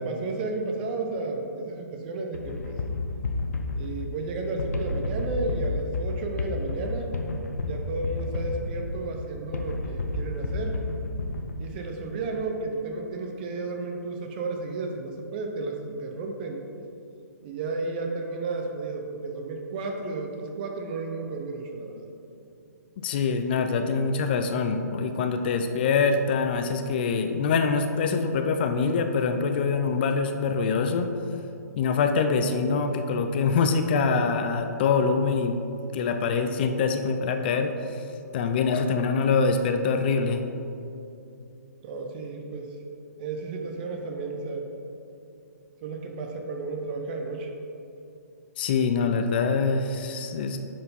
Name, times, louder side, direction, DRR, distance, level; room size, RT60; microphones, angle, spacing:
voice 1, 0.0-2.8 3.7-7.2 7.7-10.9 11.6-16.6 17.4-22.1 41.8-42.7 43.2-44.7 45.8-47.5, right 3 dB, 30° right, 3 dB, 0.9 m, -33 dB
sound 1, 2.3-11.9, left 2 dB, 65° left, 0.8 m, -31 dB
voice 2, 23.0-31.1 31.8-35.6 35.9-38.0 38.3-40.4 48.6-50.6, left 5 dB, 35° left, 7 dB, 0.5 m, -24 dB
10.0 x 4.6 x 4.2 m, 2.7 s
figure-of-eight pair, 130°, 9 cm